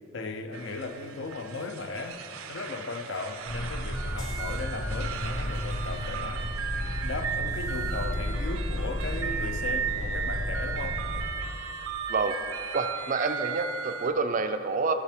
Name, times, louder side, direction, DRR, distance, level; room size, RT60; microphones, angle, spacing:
voice 1, 0.1-2.2 2.5-6.5 7.0-11.0, left 3 dB, 60° left, 0.5 m, -36 dB
sound 1, 0.5-14.1, right 7 dB, 85° right, 0.6 m, -36 dB
sound 2, 3.4-11.2, left 1 dB, 80° left, 1.1 m, -33 dB
voice 2, 12.1-14.9, right 4 dB, 40° right, 0.4 m, -28 dB
14.5 x 6.7 x 3.5 m
head